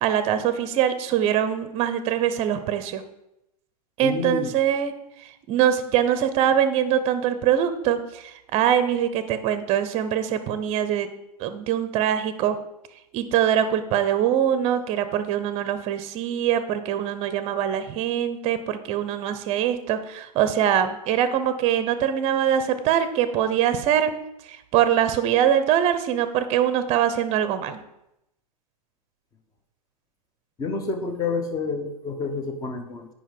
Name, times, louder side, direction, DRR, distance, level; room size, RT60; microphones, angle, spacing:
voice 1, 0.0-3.0 4.0-4.9 5.5-11.1 11.4-12.6 13.1-24.1 24.7-27.8, right 10 dB, 30° right, 11 dB, 0.8 m, -23 dB
voice 2, 4.0-4.6 30.6-33.1, left 4 dB, 15° left, 6 dB, 1.1 m, -29 dB
9.2 x 5.3 x 5.3 m, 0.85 s
hypercardioid pair, 115°, 21 cm